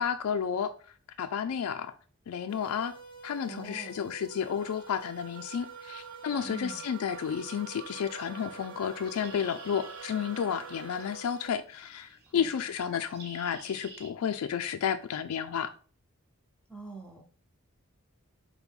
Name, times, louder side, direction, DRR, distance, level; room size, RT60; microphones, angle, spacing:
voice 1, 0.0-1.9 2.3-2.9 3.2-15.7, left 8 dB, 80° left, 0.3 m, -32 dB
sound 1, 2.5-11.5, right 3 dB, 20° left, 1.6 m, -49 dB
voice 2, 3.5-4.0 6.4-6.8 12.3-12.7 16.7-17.2, right 4 dB, 5° left, 0.6 m, -44 dB
sound 2, 4.3-11.6, right 9 dB, 60° right, 0.4 m, -48 dB
Bird, 8.6-14.1, right 3 dB, 45° right, 0.9 m, -52 dB
5.2 x 2.2 x 4.3 m
head